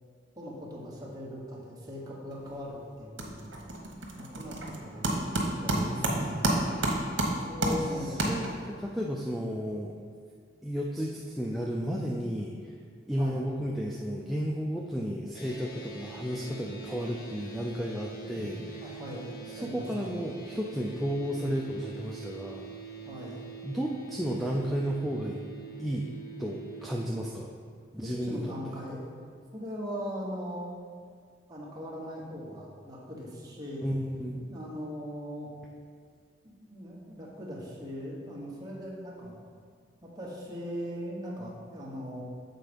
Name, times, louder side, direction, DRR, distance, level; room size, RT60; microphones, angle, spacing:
voice 1, 0.4-3.5 4.1-5.2 5.6-6.5 7.5-8.3 13.2-13.5 18.3-18.5 18.8-19.3 19.5-20.2 23.1-23.4 28.0-29.0 29.5-30.7 31.5-33.9 34.5-35.5 36.4-39.3 40.0-42.2, equal, 20° right, -4 dB, 1.3 m, -39 dB
sound 1, 2.3-2.7 2.9-8.8, right 1 dB, 75° right, 1.1 m, -30 dB
voice 2, 5.7-6.9 7.7-7.8 8.2-9.9 10.6-12.5 13.1-18.8 19.5-22.7 23.6-25.4 25.8-26.1 26.4-27.5 27.9-28.8 33.8-34.5, equal, ahead, -3 dB, 0.4 m, -33 dB
sound 2, 15.3-26.9, right 5 dB, 50° left, 0.7 m, -44 dB
7.5 x 3.9 x 5.3 m, 2.1 s
head